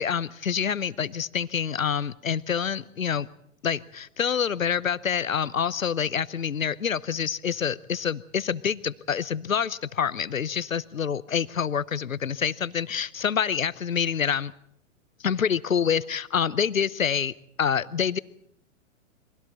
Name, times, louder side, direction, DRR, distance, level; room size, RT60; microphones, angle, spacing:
voice 1, 0.0-3.3 3.6-14.5 15.2-18.2, left 7 dB, 80° left, 19 dB, 0.8 m, -27 dB
29.5 x 23.0 x 4.1 m, 0.74 s
figure-of-eight pair, 105°, 40 cm